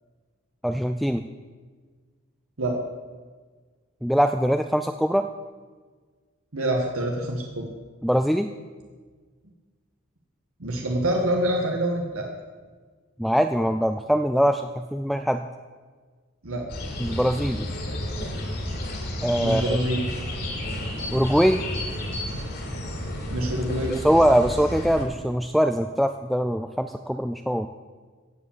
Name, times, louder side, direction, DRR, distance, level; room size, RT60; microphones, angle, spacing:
voice 1, 0.6-1.3 4.0-5.3 8.0-8.5 13.2-15.4 17.0-17.7 19.2-19.8 21.1-21.6 23.9-27.7, equal, ahead, 8 dB, 0.3 m, -22 dB
voice 2, 6.5-7.7 10.6-12.3 16.4-16.7 19.4-20.0 23.3-23.9, right 1 dB, 80° right, 1 dB, 1.7 m, -26 dB
sound 1, 16.7-25.0, left 1 dB, 50° left, 2.9 m, -31 dB
16.5 x 7.5 x 7.4 m, 1.5 s
head